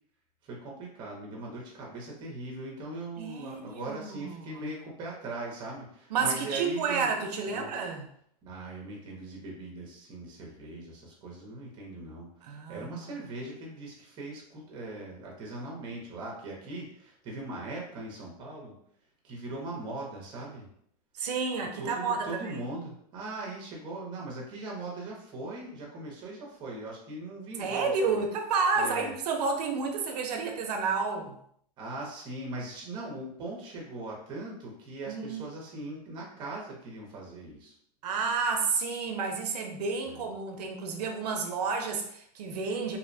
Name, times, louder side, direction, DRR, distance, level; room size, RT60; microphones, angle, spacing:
voice 1, 0.4-7.1 7.5-7.7 8.4-18.8 19.2-20.7 21.8-28.2 28.8-29.1 31.8-37.7 40.0-40.2, right 2 dB, 25° right, -2 dB, 0.6 m, -40 dB
voice 2, 3.2-4.6 6.1-8.1 12.4-13.1 21.2-22.6 27.6-31.4 35.1-35.4 38.0-43.0, right 4 dB, 85° right, 3 dB, 0.5 m, -30 dB
2.6 x 2.1 x 2.6 m, 0.67 s
supercardioid pair, 160°, 20 cm